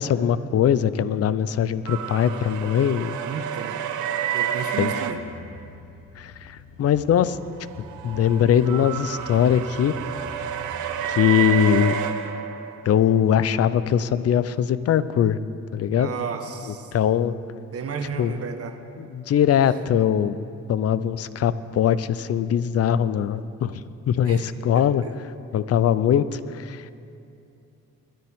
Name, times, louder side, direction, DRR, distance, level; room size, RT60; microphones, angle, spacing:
voice 1, 0.0-3.2 4.8-4.9 6.2-7.4 8.0-9.9 11.1-12.0 12.8-15.4 15.7-16.1 16.9-17.4 18.2-18.3 19.0-20.4 20.7-25.0 25.5-26.8, left 9 dB, 55° left, 15 dB, 0.6 m, -21 dB
sound 1, 1.9-5.1 7.5-13.0, right 9 dB, 80° right, 0.8 m, -29 dB
voice 2, 3.2-3.8 4.3-5.2 16.0-16.9 17.7-18.8 24.2-24.4 24.7-25.1, right 5 dB, 50° right, 6 dB, 1.3 m, -33 dB
sound 2, 5.0-11.1, left 2 dB, 85° left, 1.4 m, -45 dB
22.5 x 10.5 x 3.6 m, 2.6 s
cardioid pair, 90°, 30 cm